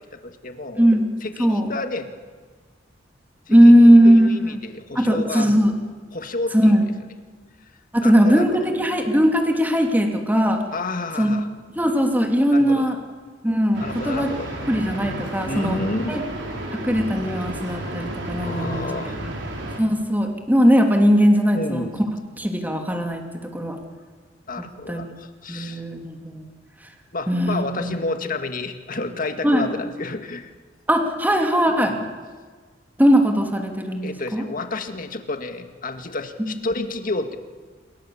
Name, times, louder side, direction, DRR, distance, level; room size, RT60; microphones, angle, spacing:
voice 1, 0.0-0.8 1.2-2.1 3.5-5.5 6.1-6.8 8.0-8.7 10.7-11.4 12.5-12.9 13.8-14.7 15.5-16.2 18.4-19.1 21.5-21.9 24.5-25.8 27.1-30.5 31.7-32.1 34.0-37.4, left 2 dB, 50° left, 6 dB, 2.0 m, -30 dB
voice 2, 1.4-1.7 3.5-4.3 4.9-5.7 6.5-6.8 7.9-10.6 11.2-11.3 11.8-13.0 13.4-14.3 14.7-15.8 16.1-16.2 16.7-19.1 19.8-21.9 22.4-23.8 24.9-25.0 25.5-26.5 27.3-27.9 29.4-29.7 30.9-32.0 33.0-34.4 36.4-36.5, equal, 10° right, 3 dB, 2.9 m, -18 dB
sound 1, 13.7-19.8, right 1 dB, 80° right, 4.8 m, -32 dB
27.5 x 23.0 x 7.3 m, 1.5 s
head